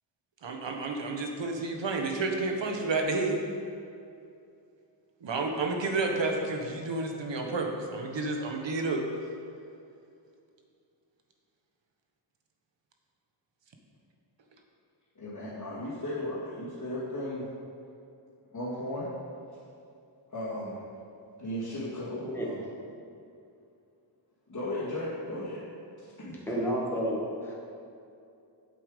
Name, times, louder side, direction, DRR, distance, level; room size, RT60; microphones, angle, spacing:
voice 1, 0.4-3.4 5.2-9.0, right 3 dB, 70° right, 2 dB, 1.3 m, -30 dB
voice 2, 15.2-17.5 18.5-19.1 20.3-20.8 21.4-22.6 24.5-25.6 26.2-26.4, left 1 dB, 40° left, -12 dB, 2.5 m, -35 dB
voice 3, 26.5-27.5, equal, 5° left, -5 dB, 1.9 m, -30 dB
8.5 x 7.7 x 5.1 m, 2.5 s
wide cardioid pair, 145°, 46 cm